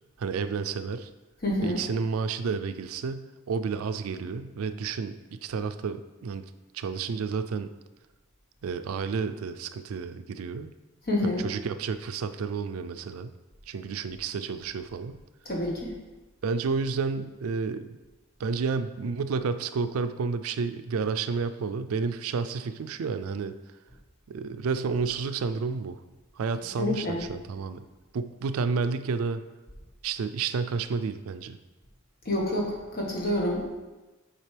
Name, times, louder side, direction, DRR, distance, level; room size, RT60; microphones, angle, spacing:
voice 1, 0.2-1.1 1.6-6.4 6.7-7.7 8.6-10.7 11.2-13.3 13.7-15.2 16.4-18.0 18.4-23.6 24.3-26.0 26.4-27.8 28.1-29.4 30.0-31.6, right 5 dB, 80° right, 11 dB, 0.4 m, -31 dB
voice 2, 1.4-1.8 11.1-11.4 15.4-15.9 26.8-27.2 32.2-33.6, left 1 dB, 45° left, -2 dB, 1.4 m, -28 dB
7.4 x 5.1 x 3.3 m, 1.1 s
head